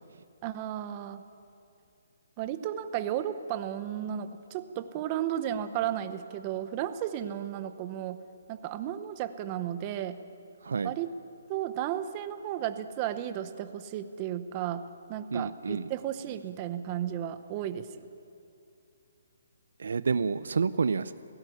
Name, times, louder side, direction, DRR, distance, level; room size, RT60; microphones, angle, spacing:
voice 1, 0.4-1.2 2.4-8.2 8.5-10.2 10.8-11.2 11.5-18.1, right 11 dB, 25° right, 11 dB, 0.9 m, -34 dB
voice 2, 15.3-15.9 19.8-21.1, right 5 dB, 75° right, 15 dB, 0.5 m, -29 dB
17.0 x 17.0 x 9.2 m, 2.5 s
hypercardioid pair, 155°, 0 cm